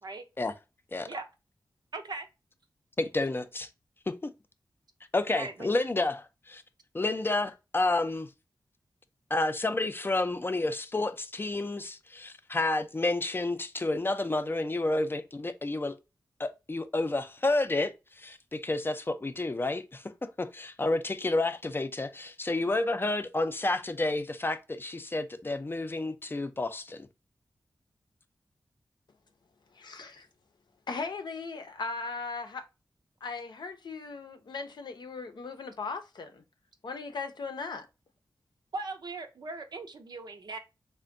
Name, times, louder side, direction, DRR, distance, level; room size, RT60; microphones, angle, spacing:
voice 1, 1.9-2.3 5.3-5.7 38.7-40.6, right 3 dB, 70° right, 0.6 m, -39 dB
voice 2, 3.0-3.7 4.1-4.2 5.1-6.6 6.9-8.3 9.3-15.9 16.4-27.1, left 2 dB, 30° left, 0.4 m, -30 dB
voice 3, 29.7-30.3 30.9-32.7 33.2-36.4 36.8-37.9, left 4 dB, 75° left, 0.6 m, -38 dB
3.3 x 2.2 x 3.7 m
cardioid pair, 55°, 8 cm